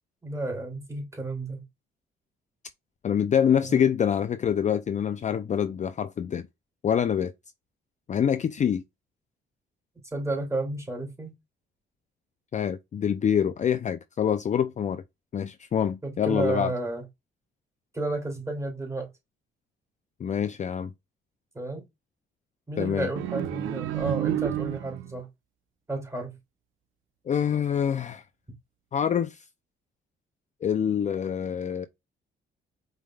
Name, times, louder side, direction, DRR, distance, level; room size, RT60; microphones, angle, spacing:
voice 1, 0.2-1.6 3.7-3.8 10.1-11.3 16.0-17.0 17.9-19.1 21.5-21.9 22.7-25.3 25.9-26.4, right 2 dB, 15° right, 2.6 m, -32 dB
voice 2, 3.0-6.5 6.8-7.3 8.1-8.8 12.5-15.0 15.3-16.7 20.2-20.9 22.8-23.1 27.3-28.2 28.9-29.4 30.6-31.9, left 8 dB, 35° left, 0.4 m, -25 dB
sound 1, 23.2-25.2, right 13 dB, 85° right, 0.6 m, -30 dB
5.2 x 3.4 x 2.3 m
cardioid pair, 90°, 20 cm